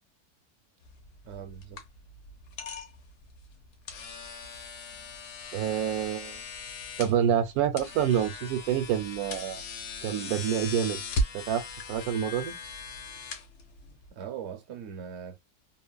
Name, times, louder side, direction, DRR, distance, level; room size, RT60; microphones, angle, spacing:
sound 1, 0.8-14.1, left 2 dB, 85° left, 1.3 m, -38 dB
voice 1, 1.2-1.8 14.1-15.4, right 8 dB, 60° right, 0.7 m, -40 dB
voice 2, 5.5-6.4 7.0-9.6 10.0-11.0 11.3-12.6, right 9 dB, 80° right, 1.1 m, -27 dB
3.2 x 2.1 x 2.2 m
omnidirectional pair, 1.6 m